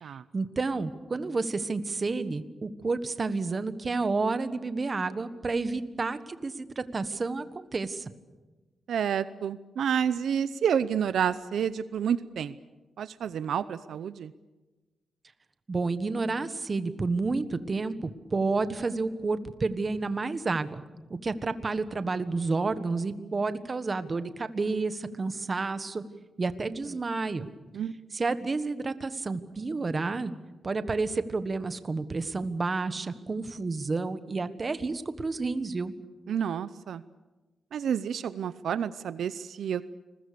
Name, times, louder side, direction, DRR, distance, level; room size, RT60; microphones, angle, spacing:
voice 1, 0.3-8.1 15.7-20.8 21.1-26.0 26.4-27.5 28.1-30.3 30.6-35.9, right 3 dB, 30° right, 11 dB, 1.4 m, -30 dB
voice 2, 8.9-12.6 13.0-14.3 27.7-27.9 36.3-37.0 37.7-39.9, right 8 dB, 85° right, 14 dB, 0.7 m, -29 dB
30.0 x 21.0 x 6.9 m, 1.2 s
wide cardioid pair, 125°, 0 cm